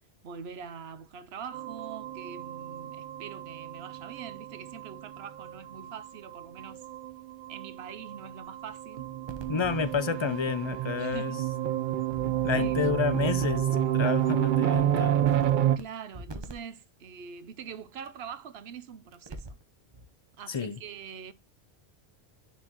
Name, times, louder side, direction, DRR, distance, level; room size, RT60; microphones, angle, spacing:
voice 1, 0.2-6.9 7.5-9.1 10.1-10.3 11.0-11.4 12.6-12.8 15.6-19.6 20.4-21.3, right 7 dB, 75° right, 1.0 m, -44 dB
Analog Evil synth drone, 1.5-15.8, right 11 dB, 60° right, 0.7 m, -30 dB
sound 1, 9.3-10.0 10.7-10.8 11.1-11.2 12.1-13.8 14.7-14.8 15.3-15.8 16.1-16.5 18.0-18.1 19.1-19.6 19.9-20.0, right 1 dB, 25° right, 0.8 m, -42 dB
voice 2, 9.5-11.4 12.4-15.2 20.5-20.8, left 6 dB, 35° left, 0.5 m, -30 dB
10.0 x 4.4 x 2.9 m
omnidirectional pair, 1.1 m